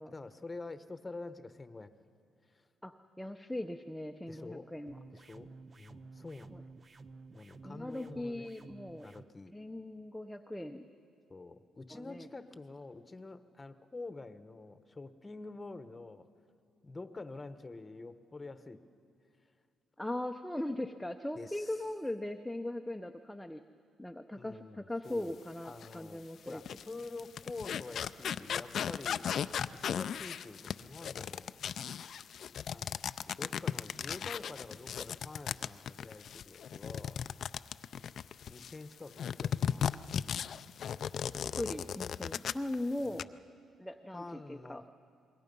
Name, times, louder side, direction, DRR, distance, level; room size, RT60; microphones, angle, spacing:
voice 1, 0.1-1.9 2.5-2.6 4.3-4.7 5.1-5.5 5.8-6.6 7.3-8.5 9.0-9.5 11.3-16.3 16.8-18.8 21.3-21.7 24.4-29.3 29.7-31.5 32.7-33.0 33.3-37.2 38.5-40.4 41.7-41.9 43.0-43.3 44.1-44.9, left 3 dB, 20° left, 10 dB, 1.1 m, -47 dB
voice 2, 2.8-5.0 6.5-6.6 7.6-9.2 9.5-10.9 11.9-12.3 20.0-23.6 24.0-26.6 41.6-43.3 43.8-44.8, left 1 dB, 5° left, 4 dB, 0.8 m, -39 dB
sound 1, 4.9-9.3, right 3 dB, 35° right, 0.7 m, -53 dB
sound 2, 25.8-25.9 26.5-38.8 39.2-42.7 43.0-43.2, left 8 dB, 60° left, 0.4 m, -36 dB
27.5 x 21.5 x 5.5 m, 2.3 s
cardioid pair, 90°, 0 cm